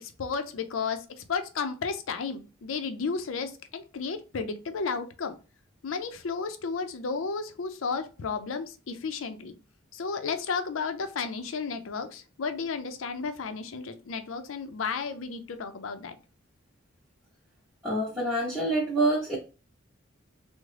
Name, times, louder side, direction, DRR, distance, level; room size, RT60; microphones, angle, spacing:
voice 1, 0.0-5.4 5.8-9.5 9.9-16.2, left 5 dB, 90° left, 0.5 m, -33 dB
voice 2, 17.8-19.4, right 2 dB, 5° right, 0.7 m, -26 dB
3.6 x 2.1 x 3.2 m
head